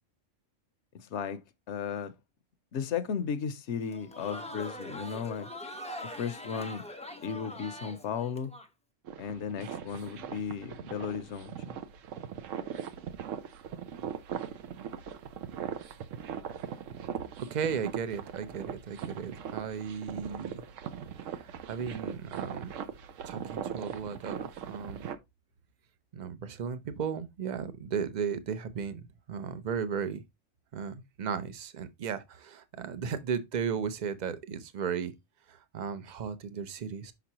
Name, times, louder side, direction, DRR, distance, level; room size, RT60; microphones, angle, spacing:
voice 1, 1.7-2.1 2.7-5.5 6.1-6.8 7.2-8.5 9.2-11.5, left 7 dB, 65° left, 1.0 m, -35 dB
Crowd, 3.8-8.7, left 1 dB, 10° left, 0.3 m, -42 dB
sound 1, 9.0-25.2, right 8 dB, 75° right, 1.0 m, -40 dB
voice 2, 17.5-20.6 21.2-22.8 23.2-25.1 26.1-30.2 30.7-35.1 35.5-37.1, right 6 dB, 45° right, 0.7 m, -35 dB
6.0 x 5.5 x 2.9 m
omnidirectional pair, 1.4 m